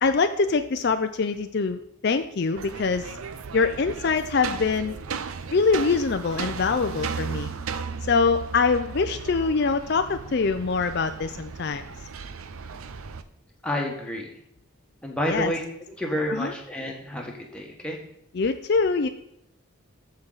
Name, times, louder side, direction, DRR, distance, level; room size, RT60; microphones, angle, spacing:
voice 1, 0.0-3.1 3.5-5.0 5.5-7.5 8.1-11.8 15.3-15.5 16.3-16.5 18.3-19.1, left 4 dB, 50° left, 8 dB, 0.4 m, -24 dB
sound 1, 2.6-13.2, right 5 dB, 85° right, 0.6 m, -35 dB
voice 2, 13.6-14.3 15.0-15.6 16.0-18.0, equal, 5° left, -1 dB, 1.5 m, -29 dB
14.0 x 5.2 x 4.0 m, 0.79 s
head